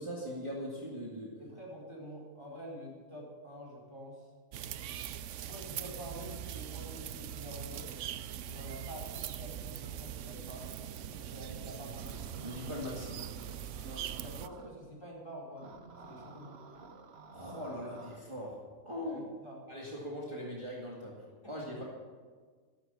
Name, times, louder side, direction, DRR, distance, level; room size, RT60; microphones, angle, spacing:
voice 1, 0.0-1.4 12.4-13.2 17.3-19.2 19.7-21.8, equal, 20° right, -4 dB, 2.2 m, -40 dB
voice 2, 1.4-4.3 5.4-7.9 8.3-10.7 11.0-12.3 13.8-15.7 16.0-16.6 19.0-19.6 21.4-21.9, equal, 20° left, -4 dB, 4.7 m, -48 dB
sound 1, 4.5-14.5, right 10 dB, 75° right, 0.9 m, -42 dB
sound 2, 11.9-14.7 15.6-18.2, right 4 dB, 55° right, 1.3 m, -53 dB
13.0 x 12.5 x 7.0 m, 1.5 s
omnidirectional pair, 1.3 m